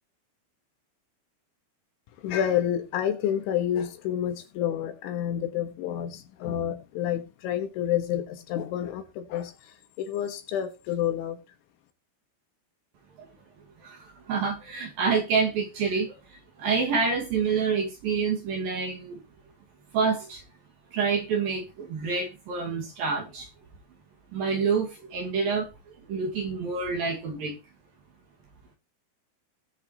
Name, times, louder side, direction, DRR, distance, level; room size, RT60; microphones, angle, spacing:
voice 1, 2.2-11.4, left 10 dB, 70° left, 3.6 m, -29 dB
voice 2, 13.8-19.2 19.9-20.4 20.9-23.5 24.3-25.7 26.1-27.6, right 5 dB, 55° right, 3.2 m, -27 dB
19.5 x 6.7 x 3.0 m
omnidirectional pair, 5.9 m